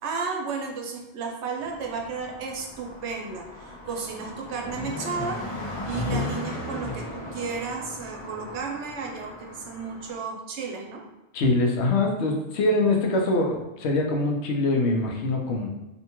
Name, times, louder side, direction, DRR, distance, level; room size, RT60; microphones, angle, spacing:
voice 1, 0.0-5.4 5.8-11.0, right 5 dB, 85° right, 1 dB, 0.9 m, -33 dB
Car passing by, 1.6-10.2, left 2 dB, 55° left, 0.3 m, -36 dB
voice 2, 11.3-15.7, left 2 dB, 80° left, 1 dB, 0.9 m, -24 dB
2.7 x 2.2 x 2.9 m, 0.97 s
omnidirectional pair, 1.1 m